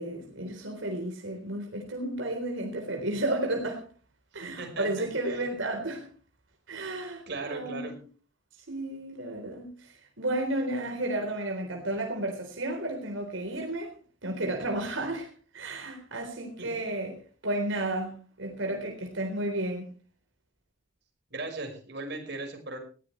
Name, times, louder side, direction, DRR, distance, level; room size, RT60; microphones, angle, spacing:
voice 1, 0.0-3.8 4.3-6.1 6.7-7.9 8.5-13.9 14.2-17.2 17.4-19.9, right 1 dB, 80° right, 2 dB, 3.9 m, -32 dB
voice 2, 4.4-5.4 7.3-7.9 16.6-16.7 21.3-22.8, right 3 dB, 60° right, 4 dB, 5.4 m, -38 dB
19.5 x 16.0 x 3.3 m, 0.39 s
head